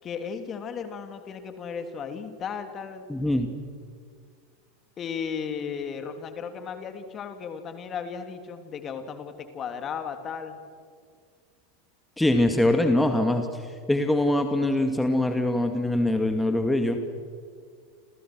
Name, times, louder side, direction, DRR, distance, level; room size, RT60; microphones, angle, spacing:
voice 1, 0.0-3.1 5.0-10.6, left 6 dB, 35° left, 7 dB, 3.2 m, -35 dB
voice 2, 3.1-3.5 12.2-17.0, left 1 dB, 5° left, 6 dB, 2.2 m, -23 dB
30.0 x 28.0 x 6.3 m, 2.1 s
hypercardioid pair, 85°, 0 cm